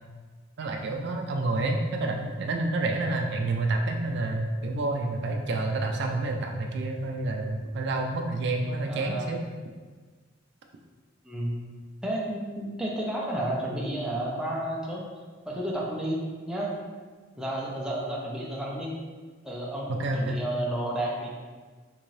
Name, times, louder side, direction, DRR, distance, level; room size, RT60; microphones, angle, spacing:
voice 1, 0.6-9.4 19.9-20.4, right 2 dB, 60° right, 3 dB, 0.3 m, -28 dB
voice 2, 8.9-9.3 11.2-11.6 12.0-15.0 15.5-16.2 16.5-16.7 17.4-18.9 19.4-21.4, right 1 dB, 5° right, -4 dB, 0.5 m, -31 dB
3.7 x 2.6 x 3.1 m, 1.4 s
head